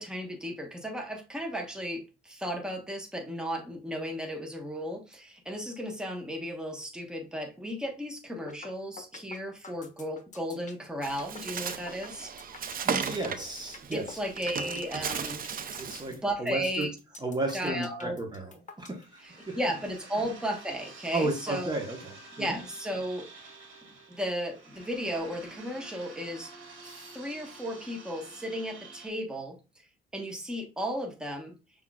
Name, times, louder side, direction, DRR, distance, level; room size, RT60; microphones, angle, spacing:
voice 1, 0.0-12.3 13.9-15.5 16.1-16.9 17.5-18.2 19.2-21.8 22.4-23.3 24.1-26.5 26.8-29.6 30.1-31.6, equal, 5° right, 1.2 m, -35 dB
sound 1, 8.5-8.7 9.0-19.0, left 5 dB, 40° left, 1.0 m, -47 dB
Bird, 11.0-16.1, right 6 dB, 45° right, 0.6 m, -35 dB
voice 2, 12.8-14.2 15.8-16.9 17.2-19.6 21.1-22.6, right 2 dB, 20° right, 1.1 m, -34 dB
sound 2, 18.9-29.1, right 3 dB, 75° right, 2.1 m, -49 dB
5.7 x 3.6 x 2.3 m
cardioid pair, 90°, 20 cm